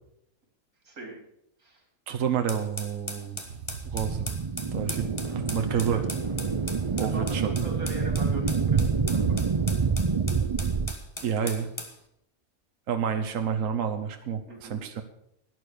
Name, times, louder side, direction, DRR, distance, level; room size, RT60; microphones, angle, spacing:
voice 1, 0.8-1.2 1.6-1.8 5.7-6.0 7.0-8.8 9.1-9.4 11.4-11.5 14.5-14.8, right 2 dB, 85° right, 2 dB, 4.0 m, -41 dB
voice 2, 2.1-4.3 4.7-6.0 7.0-7.5 11.2-11.7 12.9-15.0, right 7 dB, 65° right, 6 dB, 1.4 m, -29 dB
sound 1, 2.5-12.0, left 2 dB, 20° left, 1.6 m, -39 dB
sound 2, 3.6-10.9, right 5 dB, 50° right, 0.3 m, -27 dB
12.0 x 9.9 x 6.7 m, 0.75 s
omnidirectional pair, 1.5 m